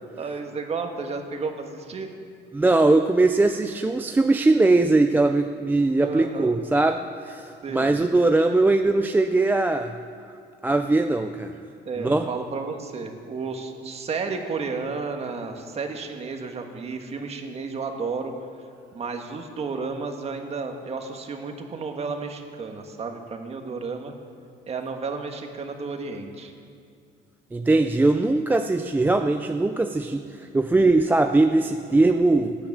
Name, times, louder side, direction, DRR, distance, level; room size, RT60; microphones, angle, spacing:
voice 1, 0.2-2.1 6.0-6.6 7.6-7.9 11.8-18.3 18.9-24.1 24.7-26.5, right 4 dB, 35° right, 4 dB, 1.5 m, -32 dB
voice 2, 2.5-9.9 10.6-11.5 12.0-12.3 27.5-32.6, right 2 dB, 10° right, 6 dB, 0.4 m, -20 dB
17.5 x 10.0 x 7.3 m, 2.3 s
cardioid pair, 155°, 19 cm